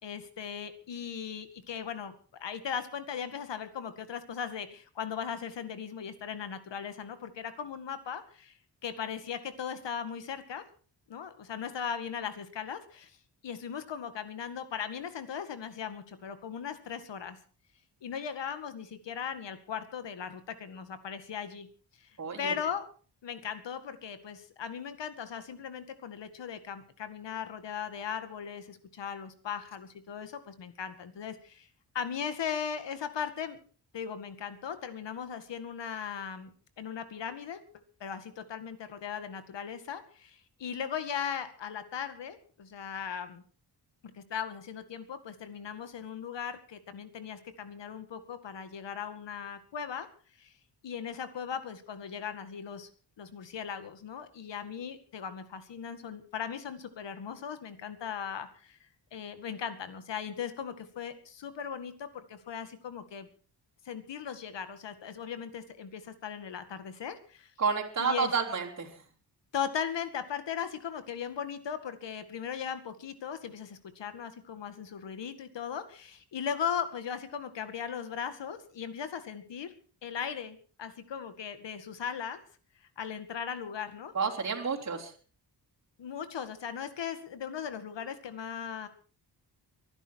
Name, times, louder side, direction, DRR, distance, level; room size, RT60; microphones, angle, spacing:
voice 1, 0.0-2.1 2.4-8.5 8.8-10.6 11.1-13.1 13.4-17.4 18.0-21.7 22.0-22.1 22.4-22.9 23.2-31.7 31.9-33.6 33.9-37.6 38.0-43.4 44.1-50.1 50.4-50.5 50.8-52.9 53.2-58.8 59.1-63.3 63.8-67.5 68.0-68.3 69.5-79.7 80.0-82.4 83.0-84.1 86.0-88.9, left 7 dB, 85° left, 10 dB, 2.1 m, -38 dB
voice 2, 22.2-22.5 67.6-69.0 84.1-85.1, right 5 dB, 40° right, -2 dB, 3.5 m, -30 dB
24.0 x 11.0 x 4.7 m, 0.41 s
wide cardioid pair, 140°, 42 cm